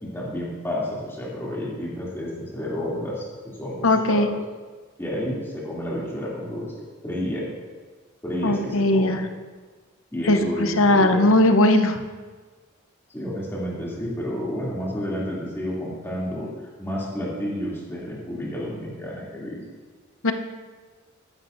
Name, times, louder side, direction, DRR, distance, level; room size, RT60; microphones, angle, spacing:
voice 1, 0.0-4.3 5.0-7.5 8.2-9.2 10.1-11.3 13.1-16.5 16.8-19.6, equal, 10° left, -6 dB, 2.8 m, -30 dB
voice 2, 3.8-4.3 8.4-9.2 10.2-12.0 20.2-20.3, left 1 dB, 75° left, 7 dB, 0.9 m, -19 dB
14.0 x 10.5 x 2.6 m, 1.4 s
head